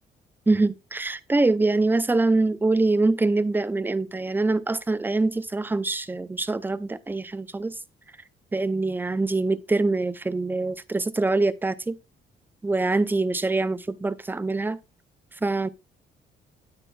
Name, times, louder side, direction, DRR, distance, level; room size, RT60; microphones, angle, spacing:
voice 1, 0.5-7.7 8.5-11.9 12.6-14.8 15.4-15.7, right 3 dB, 10° right, 0.5 m, -24 dB
8.8 x 8.5 x 2.3 m
cardioid pair, 90°, 20 cm